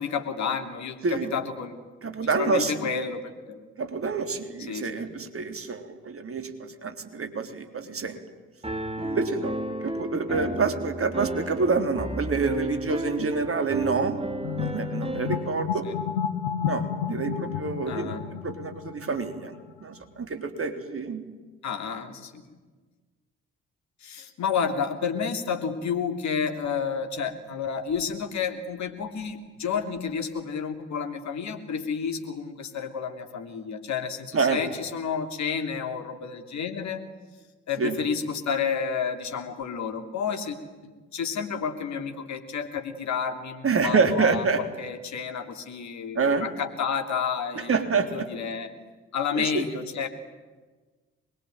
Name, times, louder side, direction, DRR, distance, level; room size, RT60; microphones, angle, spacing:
voice 1, 0.0-3.6 4.7-5.2 10.3-10.6 15.8-16.0 17.9-18.2 21.6-22.6 24.0-37.0 37.7-40.6 40.8-47.8 48.1-48.7 49.1-50.1, left 6 dB, 55° left, 5 dB, 3.0 m, -31 dB
voice 2, 2.0-2.8 3.8-8.2 9.0-9.5 9.8-14.2 14.6-15.9 16.6-19.5 19.8-21.2 34.3-34.6 37.8-38.0 43.6-44.6 46.2-46.5 47.5-48.3 49.3-49.7, right 4 dB, 40° right, 7 dB, 3.7 m, -27 dB
Piano, 8.6-15.5, right 1 dB, 15° right, 3.0 m, -33 dB
sound 1, 14.4-19.7, left 8 dB, 80° left, 1.2 m, -31 dB
25.0 x 22.5 x 9.2 m, 1.3 s
figure-of-eight pair, 40°, 33 cm